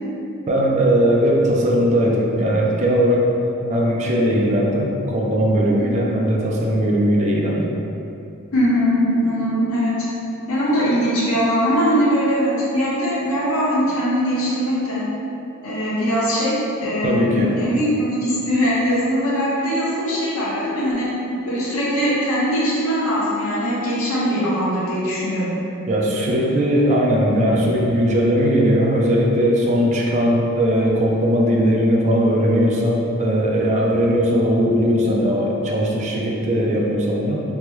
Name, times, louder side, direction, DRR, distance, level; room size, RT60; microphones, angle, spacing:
voice 1, 0.5-3.4 3.6-7.7 17.0-17.5 25.9-37.4, equal, 35° right, -2 dB, 0.4 m, -19 dB
voice 2, 8.5-10.0 10.5-15.0 15.6-21.1 21.5-25.5, equal, 75° left, -7 dB, 0.8 m, -21 dB
3.3 x 2.1 x 2.9 m, 2.8 s
head